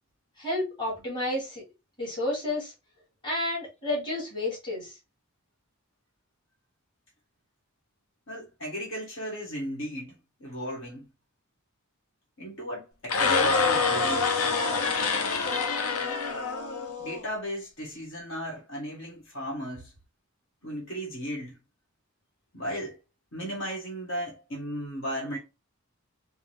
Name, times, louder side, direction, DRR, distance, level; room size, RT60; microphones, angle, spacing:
voice 1, 0.4-1.6 2.0-2.7 3.2-5.0, left 1 dB, 20° left, 1.7 m, -31 dB
voice 2, 8.3-10.1 10.4-11.1 12.4-14.8 17.0-19.9 20.6-21.6 22.5-23.0 23.3-25.4, equal, 55° left, 1.3 m, -36 dB
sound 1, 13.0-17.2, left 4 dB, 75° left, 0.7 m, -26 dB
3.6 x 2.0 x 3.1 m
head